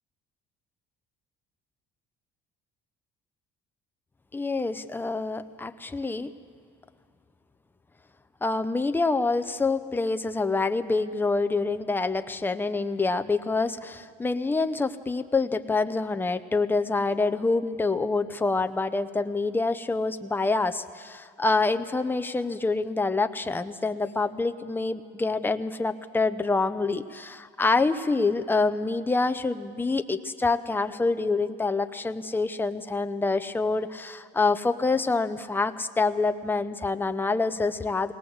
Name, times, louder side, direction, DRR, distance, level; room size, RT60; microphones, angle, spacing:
voice 1, 4.3-6.3 8.4-38.1, left 3 dB, 10° left, 9 dB, 0.7 m, -26 dB
21.0 x 18.0 x 7.9 m, 2.2 s
cardioid pair, 140°, 20 cm